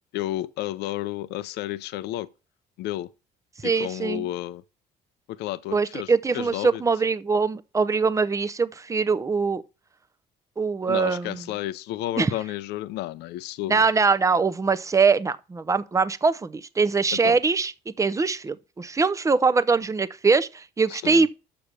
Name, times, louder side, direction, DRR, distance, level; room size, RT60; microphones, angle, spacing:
voice 1, 0.1-2.3 2.8-3.1 3.6-4.6 5.3-6.8 10.9-13.8 17.1-17.4 20.9-21.3, left 14 dB, 80° left, 0.5 m, -32 dB
voice 2, 3.6-4.3 5.7-9.6 10.6-11.4 12.2-12.3 13.7-17.7 18.0-21.3, right 4 dB, 20° right, 0.6 m, -22 dB
6.7 x 6.0 x 6.7 m
cardioid pair, 110°, 17 cm